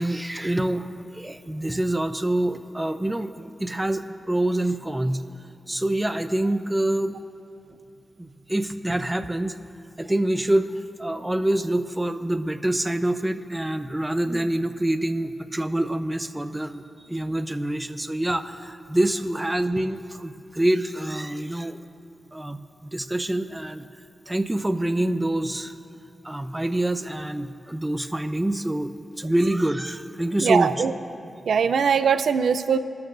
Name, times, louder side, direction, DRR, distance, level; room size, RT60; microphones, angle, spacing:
voice 1, 0.0-5.2 5.7-7.2 8.2-9.6 10.0-10.7 11.0-21.8 22.3-23.9 24.3-25.8 26.2-30.8, right 1 dB, 15° right, 9 dB, 0.8 m, -26 dB
voice 2, 30.4-30.9 31.5-32.8, right 6 dB, 90° right, 11 dB, 0.5 m, -21 dB
28.5 x 13.0 x 2.6 m, 2.7 s
cardioid pair, 70°, 0 cm